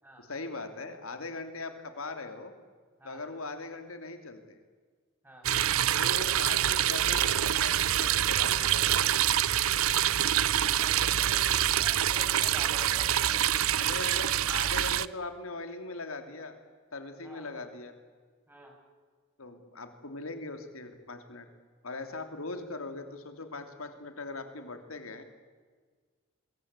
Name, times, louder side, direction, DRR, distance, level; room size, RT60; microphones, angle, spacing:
voice 1, 0.2-2.5 3.0-4.6 5.5-5.6 5.9-9.2 13.7-16.6 16.9-17.9 19.4-21.5 21.8-25.2, left 3 dB, 85° left, 7 dB, 3.0 m, -40 dB
sound 1, 5.4-15.1, right 11 dB, 90° right, 0.7 m, -26 dB
voice 2, 10.0-13.7 17.2-17.5 18.5-18.7, equal, 10° right, 1 dB, 7.5 m, -49 dB
26.5 x 23.0 x 8.3 m, 1.5 s
head